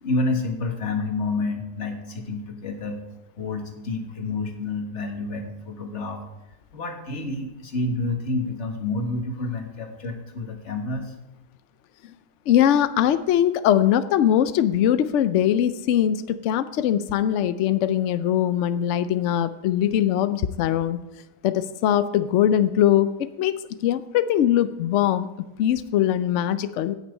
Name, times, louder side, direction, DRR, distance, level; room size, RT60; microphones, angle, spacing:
voice 1, 0.0-3.0 3.4-6.2 6.7-11.1, left 2 dB, 45° left, 3 dB, 1.7 m, -29 dB
voice 2, 12.5-21.0 21.4-25.3 25.6-26.9, left 11 dB, 80° left, 13 dB, 0.6 m, -21 dB
9.9 x 6.0 x 8.2 m, 0.97 s
omnidirectional pair, 1.8 m